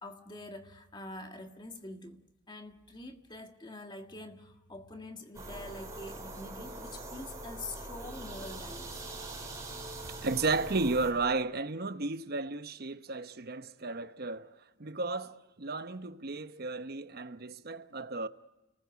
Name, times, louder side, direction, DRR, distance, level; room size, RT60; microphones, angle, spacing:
voice 1, 0.0-2.2 2.5-9.0, left 2 dB, 25° left, 1.7 m, -45 dB
sound 1, 5.3-11.1, right 2 dB, 15° right, 5.5 m, -43 dB
voice 2, 10.2-14.5 14.8-18.3, right 3 dB, 50° right, 0.9 m, -33 dB
30.0 x 20.5 x 8.2 m
head